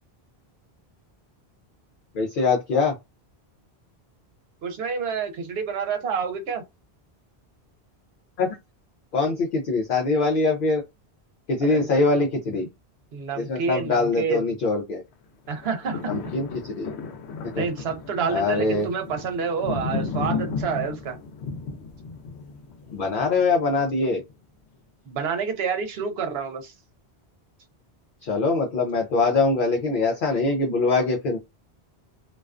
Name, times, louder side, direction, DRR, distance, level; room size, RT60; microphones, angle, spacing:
voice 1, 2.1-2.9 8.4-8.5 9.1-10.8 11.5-12.7 13.4-15.0 16.1-16.9 17.4-17.7 18.3-18.9 22.9-24.2 28.2-31.4, left 3 dB, 60° left, 0.6 m, -23 dB
voice 2, 4.6-6.6 11.6-12.0 13.1-14.5 15.5-16.1 17.5-21.2 25.1-26.7, right 5 dB, 70° right, 0.9 m, -28 dB
sound 1, 15.5-23.8 24.3-24.4, left 4 dB, 90° left, 0.9 m, -34 dB
2.4 x 2.2 x 2.3 m
omnidirectional pair, 1.1 m